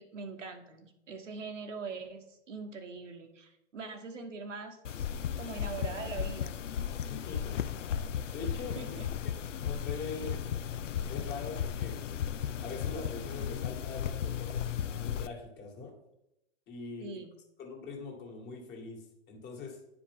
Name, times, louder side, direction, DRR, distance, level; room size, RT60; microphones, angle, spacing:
voice 1, 0.0-5.1 5.4-6.5 8.7-9.1 17.0-17.3, right 4 dB, 85° right, 4 dB, 1.2 m, -42 dB
sound 1, 4.8-15.3, left 8 dB, 90° left, 0.5 m, -35 dB
voice 2, 6.9-7.6 8.2-8.9 9.2-10.5 11.1-12.0 12.6-15.9 16.7-17.1 17.6-19.8, left 4 dB, 30° left, 1 dB, 2.0 m, -43 dB
9.8 x 5.0 x 3.6 m, 0.87 s
hypercardioid pair, 120°, 36 cm